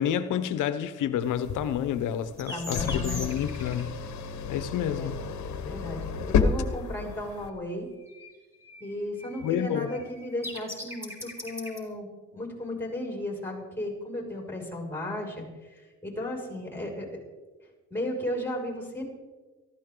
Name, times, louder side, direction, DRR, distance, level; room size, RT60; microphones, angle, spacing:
voice 1, 0.0-3.9 4.5-5.2 9.4-9.9, left 9 dB, 85° left, 1.1 m, -29 dB
sound 1, 1.2-7.5, left 5 dB, 65° left, 1.3 m, -31 dB
sound 2, 2.4-3.8 8.1-8.3 8.6-11.8, left 1 dB, 10° right, 4.0 m, -40 dB
voice 2, 2.5-3.2 4.9-5.2 5.6-7.9 8.8-17.1 17.9-19.1, left 1 dB, 5° left, 6.2 m, -35 dB
18.5 x 15.0 x 3.9 m
cardioid pair, 90°, 30 cm